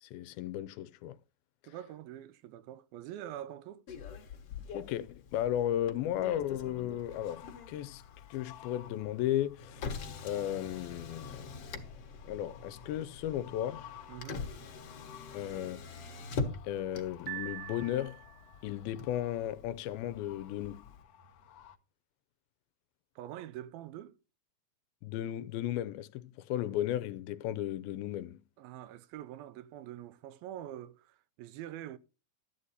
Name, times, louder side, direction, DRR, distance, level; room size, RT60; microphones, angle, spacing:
voice 1, 0.0-1.2 4.7-8.0 8.3-9.9 10.2-11.5 12.2-13.9 15.3-15.9 16.6-18.2 18.6-20.9 25.0-28.4, left 12 dB, 85° left, 2.6 m, -35 dB
voice 2, 1.7-3.9 14.1-14.5 23.2-24.2 28.6-32.0, right 12 dB, 90° right, 2.6 m, -45 dB
Motor vehicle (road), 3.9-21.0, left 4 dB, 55° left, 1.8 m, -44 dB
sound 1, 6.3-21.8, left 11 dB, 70° left, 1.5 m, -56 dB
Piano, 17.3-18.6, right 20 dB, 70° right, 2.0 m, -43 dB
12.5 x 8.0 x 4.1 m
omnidirectional pair, 4.2 m